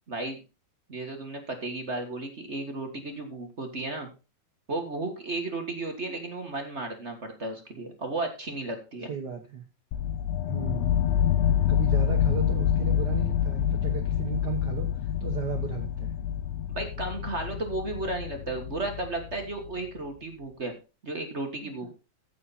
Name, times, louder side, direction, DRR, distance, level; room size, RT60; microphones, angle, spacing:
voice 1, 0.1-0.4 0.9-4.1 4.7-9.1 16.7-20.7 21.0-21.9, right 2 dB, 35° right, 4 dB, 1.2 m, -34 dB
voice 2, 9.1-9.6 10.5-11.0 11.7-16.2 21.6-21.9, right 7 dB, 60° right, 3 dB, 1.1 m, -35 dB
sound 1, 9.9-19.7, left 10 dB, 80° left, 2.0 m, -27 dB
14.5 x 5.8 x 4.1 m, 0.30 s
omnidirectional pair, 3.4 m